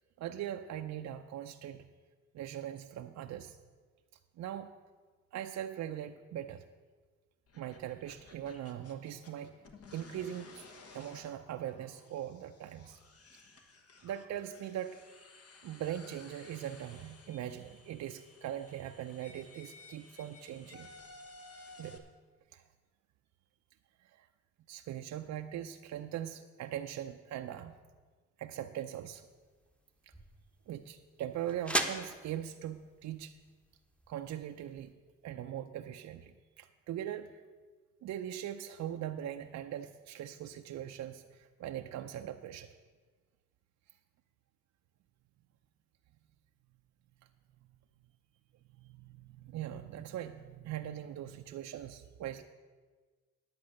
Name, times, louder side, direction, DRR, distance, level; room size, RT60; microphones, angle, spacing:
voice 1, 0.2-1.9 2.3-3.6 4.4-4.7 5.3-6.6 7.5-9.5 9.9-10.6 10.9-13.0 14.0-15.0 15.6-20.9 21.8-22.0 22.5-22.6 24.0-24.3 24.7-27.8 28.4-29.2 30.1-30.2 30.7-33.3 34.1-34.9 35.2-37.4 38.0-42.7 48.8-52.4, right 11 dB, 65° right, 5 dB, 0.6 m, -41 dB
sound 1, 7.5-22.0, left 3 dB, 50° left, 1.3 m, -56 dB
sound 2, 29.0-34.9, right 1 dB, 5° left, 1.0 m, -40 dB
10.5 x 7.9 x 6.4 m, 1.4 s
cardioid pair, 90°, 30 cm